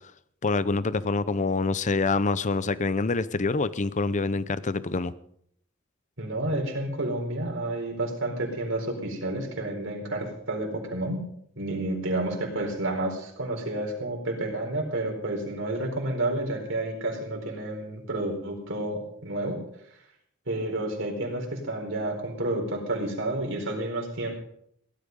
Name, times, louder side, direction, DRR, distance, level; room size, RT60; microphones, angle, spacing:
voice 1, 0.4-5.1, left 3 dB, 35° left, 16 dB, 0.6 m, -26 dB
voice 2, 6.2-11.2 11.6-19.6 20.5-24.3, right 1 dB, 65° right, 1 dB, 4.5 m, -30 dB
17.0 x 12.5 x 5.3 m, 0.69 s
head